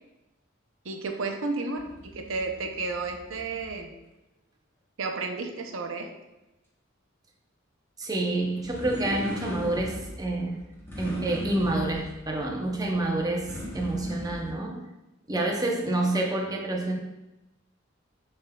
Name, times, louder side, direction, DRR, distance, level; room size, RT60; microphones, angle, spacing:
voice 1, 0.8-3.9 5.0-6.1, right 3 dB, 80° right, 4 dB, 0.6 m, -32 dB
sound 1, 1.8-3.8 8.6-14.5, equal, 10° left, 0.8 m, -39 dB
voice 2, 8.0-10.6 11.0-14.8 15.3-17.0, right 2 dB, 20° right, 1 dB, 0.6 m, -28 dB
6.8 x 3.4 x 2.2 m, 0.96 s
head